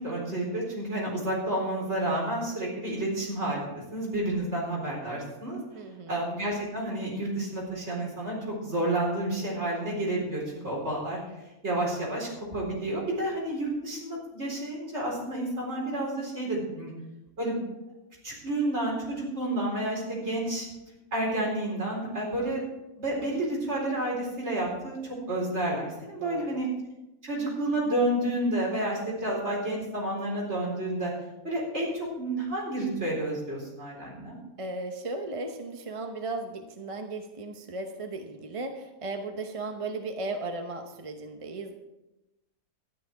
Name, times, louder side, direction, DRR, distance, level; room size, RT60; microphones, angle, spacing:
voice 1, 0.0-5.6 6.1-11.2 11.6-16.9 17.4-17.6 18.2-20.6 21.1-22.6 23.0-25.0 25.3-26.7 27.2-31.1 31.4-34.4, right 1 dB, 50° right, -3 dB, 4.6 m, -30 dB
voice 2, 5.7-6.2 10.6-10.8 26.1-26.6 34.6-41.7, right 2 dB, 30° right, 5 dB, 0.7 m, -36 dB
12.5 x 10.5 x 4.7 m, 0.97 s
omnidirectional pair, 1.5 m